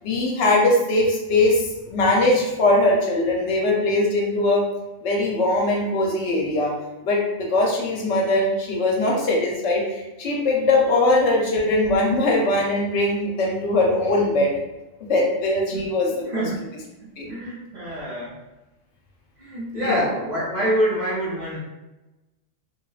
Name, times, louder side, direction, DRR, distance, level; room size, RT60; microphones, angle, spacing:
voice 1, 0.0-4.6 5.0-6.7 7.0-14.5 15.1-16.3 17.2-17.3 19.7-20.1, left 2 dB, 75° left, -1 dB, 0.9 m, -21 dB
voice 2, 15.7-16.7 17.0-18.4 19.4-21.6, equal, 45° right, -8 dB, 0.6 m, -27 dB
2.7 x 2.0 x 2.3 m, 1.0 s
omnidirectional pair, 1.2 m